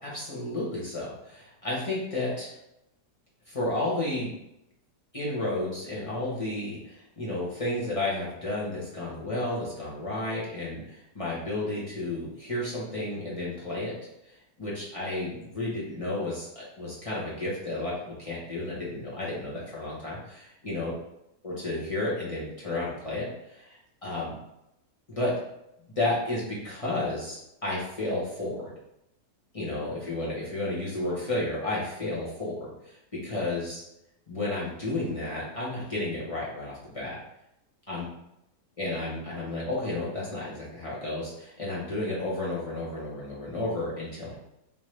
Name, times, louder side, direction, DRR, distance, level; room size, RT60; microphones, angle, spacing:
voice 1, 0.0-2.5 3.5-4.3 5.1-13.9 14.6-20.9 21.4-24.3 25.1-25.3 26.0-28.7 29.5-33.0 33.2-33.8 34.3-37.2 37.9-38.0 38.8-44.4, left 2 dB, 25° left, -7 dB, 0.9 m, -32 dB
3.5 x 2.8 x 3.1 m, 0.84 s
omnidirectional pair, 1.8 m